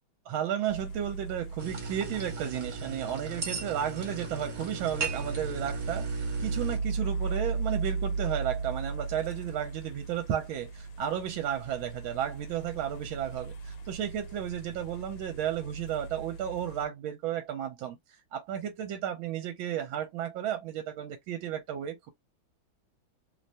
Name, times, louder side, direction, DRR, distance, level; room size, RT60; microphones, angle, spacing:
voice 1, 0.3-18.0 18.3-22.1, right 10 dB, 80° right, 1.4 m, -33 dB
sound 1, 0.7-16.9, right 4 dB, 75° left, 1.3 m, -37 dB
sound 2, 1.6-6.8, right 4 dB, 50° right, 1.0 m, -38 dB
3.3 x 2.1 x 2.6 m
omnidirectional pair, 2.3 m